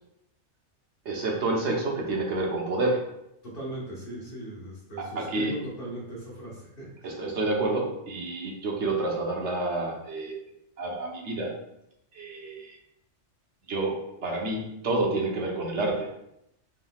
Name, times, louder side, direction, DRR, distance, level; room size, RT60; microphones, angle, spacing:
voice 1, 1.0-3.0 5.0-5.5 7.0-10.4 10.8-11.5 12.1-12.8 13.7-16.1, right 2 dB, 75° right, -1 dB, 1.2 m, -29 dB
voice 2, 3.4-7.2, right 1 dB, 50° left, -5 dB, 1.4 m, -38 dB
4.5 x 3.8 x 2.3 m, 0.81 s
omnidirectional pair, 1.2 m